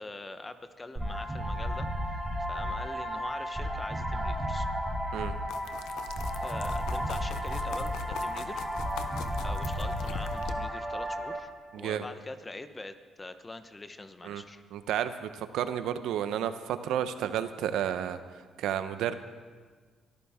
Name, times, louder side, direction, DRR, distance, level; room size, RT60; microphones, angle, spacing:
voice 1, 0.0-1.9 2.4-4.7 6.4-9.0 9.4-11.5 11.8-14.6, left 2 dB, 20° left, 10 dB, 1.0 m, -43 dB
sound 1, 1.0-11.4, equal, 10° right, 3.2 m, -33 dB
sound 2, 5.5-10.5, left 8 dB, 85° left, 0.8 m, -41 dB
voice 2, 11.7-12.0 14.2-14.4 14.7-18.2 18.6-19.1, right 10 dB, 85° right, 11 dB, 0.8 m, -31 dB
23.0 x 13.5 x 3.7 m, 1.5 s
cardioid pair, 90°, 0 cm